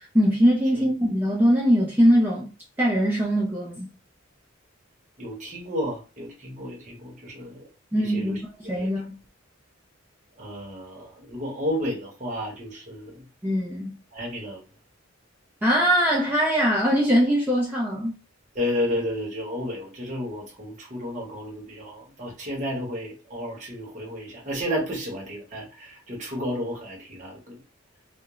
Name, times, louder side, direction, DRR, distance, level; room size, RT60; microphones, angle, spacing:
voice 1, 0.0-2.5 2.8-3.9 7.9-9.2 13.4-14.0 15.6-18.2, equal, 10° right, 0.4 m, -22 dB
voice 2, 5.2-7.7 8.0-8.4 8.8-8.9 10.4-13.2 14.1-14.6 18.5-27.6, equal, 35° right, 0.9 m, -32 dB
2.3 x 2.1 x 2.9 m
head